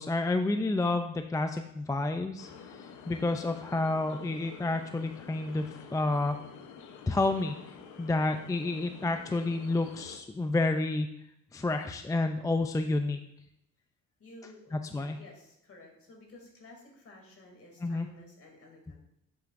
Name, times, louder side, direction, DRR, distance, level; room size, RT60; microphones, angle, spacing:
voice 1, 0.0-6.4 7.1-7.6 8.0-11.1 11.5-13.2 14.7-15.2 17.8-18.1, left 2 dB, 10° left, 7 dB, 0.4 m, -30 dB
sound 1, 2.4-10.2, left 6 dB, 80° left, 0.9 m, -49 dB
voice 2, 14.2-19.0, left 2 dB, 50° left, 1 dB, 2.7 m, -53 dB
9.0 x 7.5 x 2.6 m, 0.79 s
cardioid pair, 90°, 30 cm